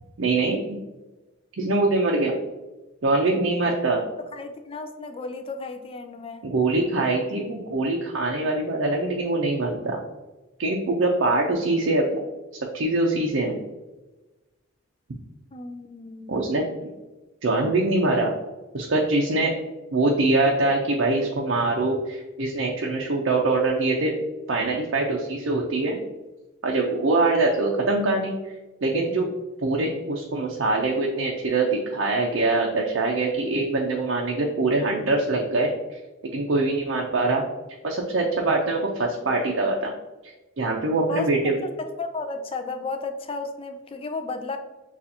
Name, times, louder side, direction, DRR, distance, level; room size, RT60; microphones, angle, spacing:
voice 1, 0.2-0.8 1.6-2.3 3.0-4.0 6.4-10.0 10.6-12.1 12.7-13.6 16.3-16.9 17.4-18.3 18.7-19.5 19.9-24.1 24.5-26.0 26.6-28.3 28.8-29.3 29.6-35.7 36.3-37.4 37.8-39.9 40.2-41.5, right 2 dB, 60° right, -1 dB, 0.5 m, -23 dB
voice 2, 4.2-6.4 15.5-16.5 41.1-41.4 41.8-44.6, left 3 dB, 25° left, 6 dB, 0.4 m, -33 dB
6.7 x 2.4 x 2.7 m, 1.1 s
head